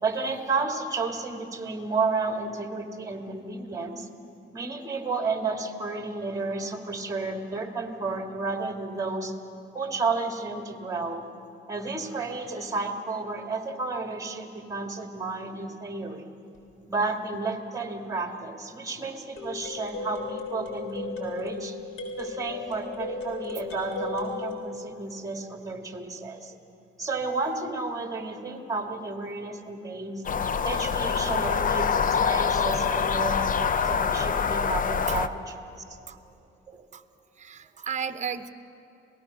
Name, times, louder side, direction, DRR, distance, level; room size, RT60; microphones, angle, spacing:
voice 1, 0.0-4.1 4.5-9.3 9.7-11.3 11.7-16.2 16.9-21.8 22.2-26.6 27.0-30.2 30.6-35.6 35.9-36.0 36.7-36.8, right 3 dB, 15° right, 4 dB, 2.2 m, -32 dB
sound 1, 16.6-16.7 19.4-24.6, left 4 dB, 85° left, 4.0 m, -35 dB
sound 2, 30.2-35.3, left 6 dB, 45° left, 0.7 m, -25 dB
voice 2, 37.4-38.5, right 7 dB, 35° right, 10 dB, 0.9 m, -34 dB
27.0 x 18.5 x 6.3 m, 2.7 s
cardioid pair, 90°, 20 cm